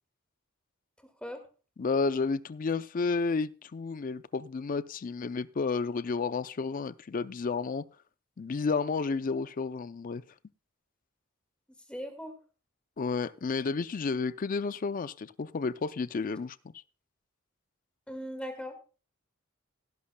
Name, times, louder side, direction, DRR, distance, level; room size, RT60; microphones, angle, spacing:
voice 1, 1.8-7.8 8.4-10.2 13.0-16.7, left 4 dB, 40° left, 0.4 m, -31 dB
voice 2, 11.9-12.3 18.1-18.8, equal, 5° left, 1.8 m, -39 dB
18.0 x 11.0 x 2.2 m
head